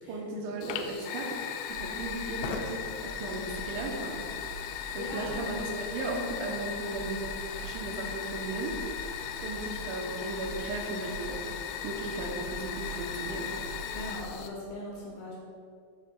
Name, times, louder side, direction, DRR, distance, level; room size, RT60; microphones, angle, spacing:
voice 1, 0.1-1.3 1.7-4.3 4.9-7.3 7.6-8.8 9.4-11.4 11.8-13.5, right 2 dB, 90° right, 1 dB, 3.1 m, -36 dB
Fire, 0.6-14.5, left 8 dB, 85° left, 2.6 m, -38 dB
sound 1, 1.6-14.2, right 2 dB, 60° right, 1.8 m, -45 dB
voice 2, 5.0-5.4 13.9-15.3, left 1 dB, 65° left, -5 dB, 2.5 m, -40 dB
10.5 x 6.4 x 2.3 m, 2.3 s
omnidirectional pair, 5.3 m